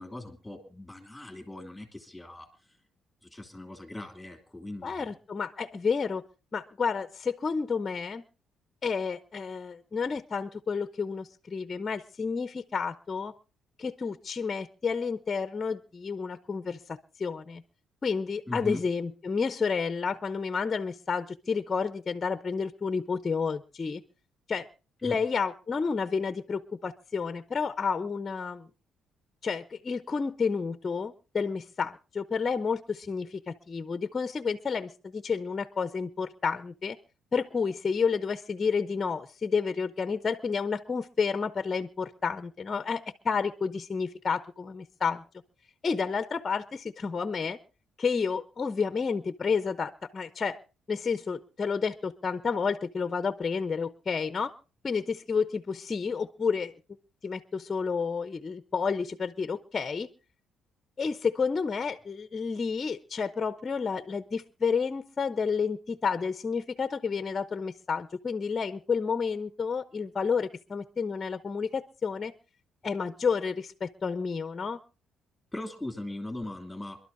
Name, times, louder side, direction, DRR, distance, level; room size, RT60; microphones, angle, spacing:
voice 1, 0.0-2.5 3.2-5.1 18.5-18.8 25.0-25.2 75.5-77.0, left 1 dB, 5° left, 5 dB, 2.7 m, -39 dB
voice 2, 4.8-6.2 6.5-8.2 8.8-13.3 13.8-17.6 18.0-24.0 24.5-24.7 25.0-28.7 29.4-37.0 37.3-45.2 45.8-47.6 48.0-50.6 50.9-54.5 54.8-56.7 57.2-60.1 61.0-72.3 72.8-74.8, left 5 dB, 30° left, 9 dB, 0.8 m, -30 dB
27.5 x 12.0 x 2.7 m, 0.32 s
cardioid pair, 115°, 0 cm